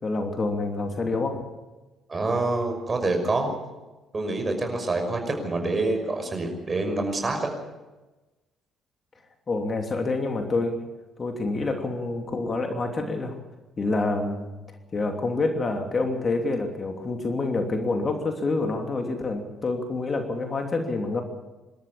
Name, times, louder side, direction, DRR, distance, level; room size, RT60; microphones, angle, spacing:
voice 1, 0.0-1.4 9.5-10.8 11.2-13.4 13.8-14.5 14.9-21.2, left 3 dB, 40° left, 4 dB, 3.0 m, -27 dB
voice 2, 2.1-3.5 4.1-7.5, right 2 dB, 30° right, 4 dB, 5.8 m, -26 dB
25.0 x 13.5 x 8.7 m, 1.1 s
hypercardioid pair, 45°, 0 cm